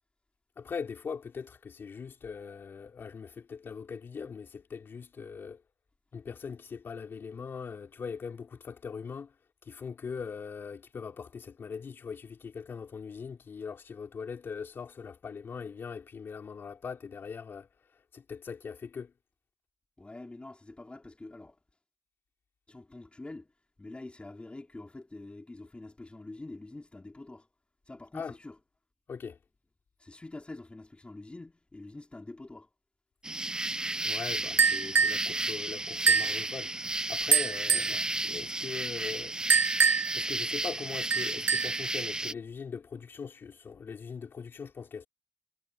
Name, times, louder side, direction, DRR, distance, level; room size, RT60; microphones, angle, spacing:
voice 1, 0.6-5.6 6.1-9.4 9.6-19.1 28.1-28.3 29.1-29.4 34.0-36.8 37.1-39.4 40.1-45.1, left 6 dB, 80° left, 3.4 m, -41 dB
voice 2, 20.0-21.6 22.7-23.5 23.8-27.5 27.9-28.6 30.0-32.7 37.7-38.0, left 2 dB, 30° left, 4.1 m, -46 dB
sound 1, 33.2-42.3, right 2 dB, 20° right, 0.6 m, -33 dB
sound 2, 34.6-35.2 36.1-36.4 37.3-38.0 39.5-40.2 41.1-41.8, right 5 dB, 70° right, 0.4 m, -24 dB
cardioid pair, 50°, 4 cm